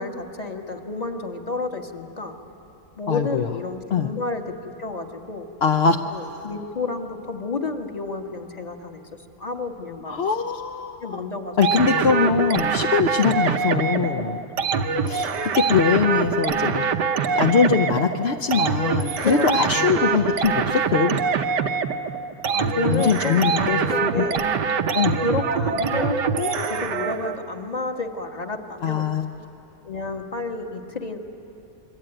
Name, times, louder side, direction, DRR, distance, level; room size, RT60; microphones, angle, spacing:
voice 1, 0.0-2.3 3.0-5.5 6.1-9.0 9.4-10.2 11.0-12.0 14.0-14.3 19.1-19.6 22.5-24.4 25.1-29.1 29.8-31.2, left 3 dB, 25° left, 4 dB, 1.5 m, -30 dB
voice 2, 3.1-3.5 3.9-4.1 5.6-6.0 10.1-11.2 11.6-14.4 15.0-16.9 17.3-21.2 22.9-24.3 24.9-25.2 28.8-29.2, left 6 dB, 55° left, 5 dB, 0.7 m, -22 dB
sound 1, 11.6-27.4, right 5 dB, 90° right, 1.5 m, -24 dB
29.0 x 23.0 x 8.9 m, 2.9 s
omnidirectional pair, 1.8 m